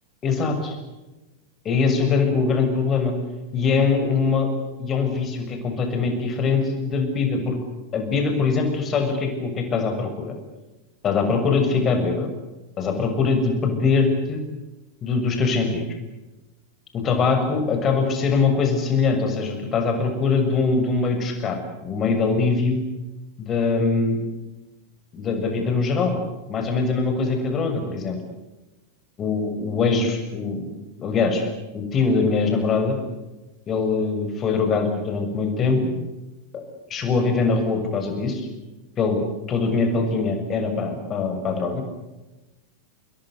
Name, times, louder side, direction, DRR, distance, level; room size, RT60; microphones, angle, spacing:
voice 1, 0.2-0.8 1.7-3.1 3.5-4.5 4.8-7.6 7.9-10.3 11.0-12.3 12.8-14.4 15.0-15.8 16.9-21.6 21.8-22.8 23.4-24.2 25.1-26.2 26.5-28.2 29.2-30.6 31.0-31.4 31.7-33.0 33.7-35.9 36.5-36.6 36.9-38.5 39.0-39.2 39.5-41.8, left 4 dB, 25° left, 5 dB, 7.0 m, -22 dB
28.5 x 21.5 x 8.3 m, 1.1 s
figure-of-eight pair, 90°, 0 cm